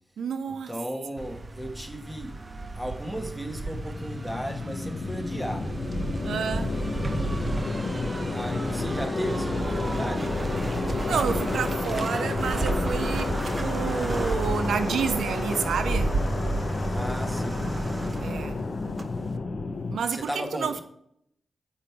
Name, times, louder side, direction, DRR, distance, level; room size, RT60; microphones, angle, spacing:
voice 1, 0.2-0.8 6.2-6.8 10.9-16.2 18.2-18.6 19.9-20.8, right 6 dB, 85° right, 0.4 m, -30 dB
voice 2, 0.7-2.4 2.7-5.8 8.3-10.5 16.9-17.7 20.1-20.8, equal, 10° right, 1.3 m, -35 dB
sound 1, 1.2-19.3, right 2 dB, 35° right, 0.6 m, -32 dB
sound 2, 3.0-20.0, left 3 dB, 55° left, 0.6 m, -31 dB
8.0 x 5.0 x 4.5 m
cardioid pair, 60°, 0 cm